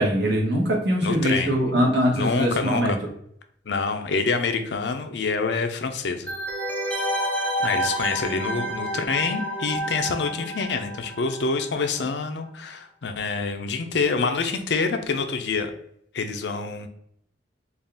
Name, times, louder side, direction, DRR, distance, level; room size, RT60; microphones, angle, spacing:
voice 1, 0.0-2.9, equal, 65° right, -2 dB, 1.2 m, -22 dB
voice 2, 1.0-1.6 2.1-3.0 3.7-6.3 7.6-15.7 16.1-16.9, left 4 dB, 70° left, 7 dB, 0.5 m, -26 dB
sound 1, 6.3-11.7 12.0-12.1, equal, 10° left, 0.6 m, -29 dB
4.0 x 2.4 x 3.5 m, 0.69 s
head